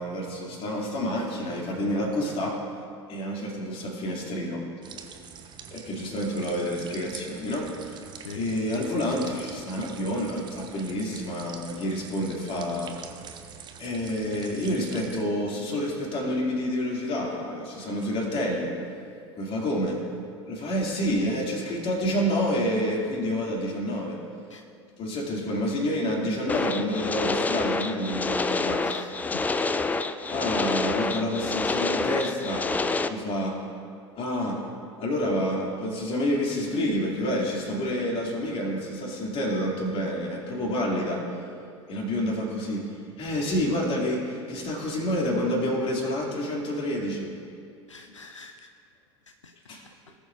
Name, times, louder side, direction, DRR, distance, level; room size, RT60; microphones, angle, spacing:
voice 1, 0.0-2.6 3.1-4.6 5.7-8.0 8.4-12.9 13.8-18.7 19.4-20.0 20.5-24.2 25.0-28.9 30.3-32.7 33.1-33.6 34.2-34.6 35.0-41.3 41.9-47.3 49.7-49.8, equal, 40° left, -2 dB, 2.5 m, -28 dB
sound 1, 4.8-15.2, right 7 dB, 30° right, 0.8 m, -45 dB
sound 2, 26.5-33.1, left 3 dB, 10° left, 0.3 m, -27 dB
voice 2, 28.8-29.5 47.9-48.7 49.4-49.6 49.8-49.9, left 4 dB, 85° left, 6 dB, 0.4 m, -45 dB
18.5 x 7.0 x 2.5 m, 2.3 s
figure-of-eight pair, 80°, 15 cm